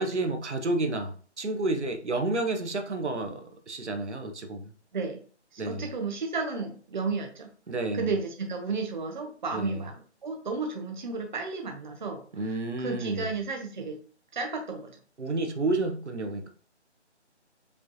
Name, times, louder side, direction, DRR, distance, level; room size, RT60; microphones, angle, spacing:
voice 1, 0.0-4.7 5.6-5.9 7.7-8.1 9.5-9.8 12.3-13.3 15.2-16.5, right 2 dB, 75° right, 5 dB, 0.9 m, -30 dB
voice 2, 5.5-7.5 7.9-9.9 10.2-14.0 14.3-14.9, right 4 dB, 40° right, 3 dB, 0.7 m, -33 dB
5.3 x 3.2 x 2.7 m, 0.44 s
figure-of-eight pair, 155°, 35 cm